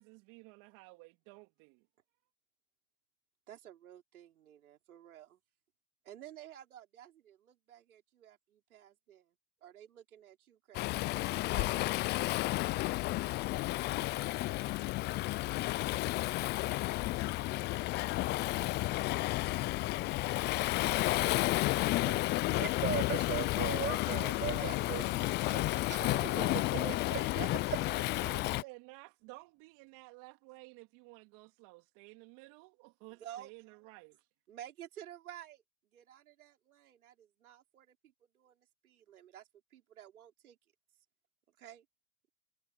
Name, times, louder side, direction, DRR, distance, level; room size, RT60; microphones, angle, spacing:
voice 1, 0.0-1.9 28.0-34.2, right 26 dB, 45° right, 3.4 m, -54 dB
voice 2, 3.5-5.4 6.0-9.3 9.6-11.1 11.5-11.9 12.9-13.2 20.3-20.4 24.5-26.5 27.4-27.8 33.2-33.5 34.5-35.6 35.9-40.6 41.6-41.9, right 11 dB, 75° right, 5.4 m, -52 dB
Waves surf, 10.7-28.6, left 19 dB, 25° left, 0.5 m, -32 dB
voice 3, 17.0-19.7, left 22 dB, 55° left, 3.7 m, -52 dB
voice 4, 22.0-25.0 25.5-27.3, right 10 dB, 25° right, 2.9 m, -39 dB
hypercardioid pair, 110°, 43 cm